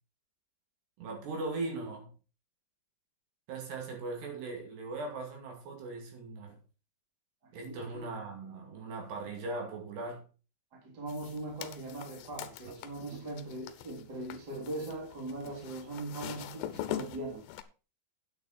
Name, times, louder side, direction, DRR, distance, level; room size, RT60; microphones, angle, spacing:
voice 1, 1.0-2.1 3.5-6.6 7.5-10.3 12.6-12.7, right 3 dB, 65° right, 4.5 m, -39 dB
voice 2, 7.4-8.1 10.7-17.4, right 2 dB, 25° right, 2.9 m, -40 dB
sound 1, 11.1-17.6, left 12 dB, 75° left, 2.8 m, -43 dB
9.3 x 9.2 x 4.4 m
omnidirectional pair, 5.3 m